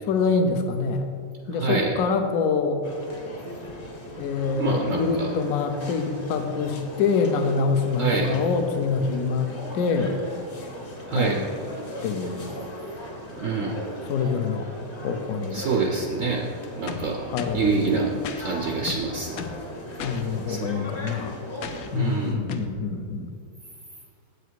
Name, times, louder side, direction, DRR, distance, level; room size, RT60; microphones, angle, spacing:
voice 1, 0.1-1.1 1.5-2.8 4.2-10.2 11.1-11.5 12.0-12.5 14.1-14.7 15.0-15.6 17.3-18.2 20.0-21.4 21.9-23.3, left 4 dB, 65° left, 6 dB, 0.9 m, -25 dB
voice 2, 1.6-1.9 4.6-5.3 8.0-8.3 11.1-11.4 13.3-13.8 15.5-16.5 16.8-19.4 20.1-20.2 20.5-20.7 21.9-22.4, right 4 dB, 75° right, 0 dB, 0.7 m, -26 dB
sound 1, 2.8-22.3, left 1 dB, 35° left, 1.0 m, -39 dB
sound 2, 16.9-17.7 18.2-18.4 18.9-19.6 20.0-20.2 21.6-21.9 22.5-22.7, left 7 dB, 85° left, 0.7 m, -35 dB
7.9 x 6.7 x 4.6 m, 2.2 s
omnidirectional pair, 2.2 m